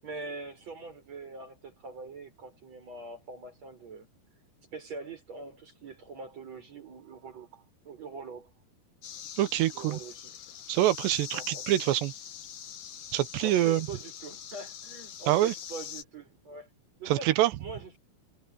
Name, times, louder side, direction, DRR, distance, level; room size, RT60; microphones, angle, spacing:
voice 1, 0.0-4.1 4.7-8.5 9.7-10.3 11.3-11.7 13.4-16.7 17.0-17.3 17.6-18.0, right 3 dB, 40° right, 7.8 m, -43 dB
sound 1, 9.0-16.0, left 9 dB, 60° left, 3.2 m, -43 dB
voice 2, 9.4-10.0 10.7-12.1 13.1-13.9 15.3-15.5 17.1-17.5, right 14 dB, 90° right, 3.2 m, -25 dB
omnidirectional pair, 4.8 m